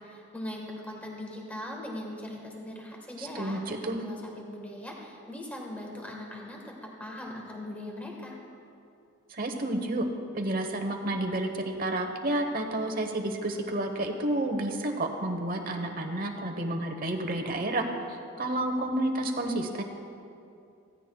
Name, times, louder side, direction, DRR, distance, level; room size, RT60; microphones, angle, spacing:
voice 1, 0.0-8.4, left 1 dB, 5° left, -1 dB, 1.4 m, -40 dB
voice 2, 3.2-4.0 9.3-10.1 10.3-19.8, right 1 dB, 40° right, 5 dB, 1.0 m, -30 dB
16.0 x 15.5 x 2.3 m, 2.6 s
head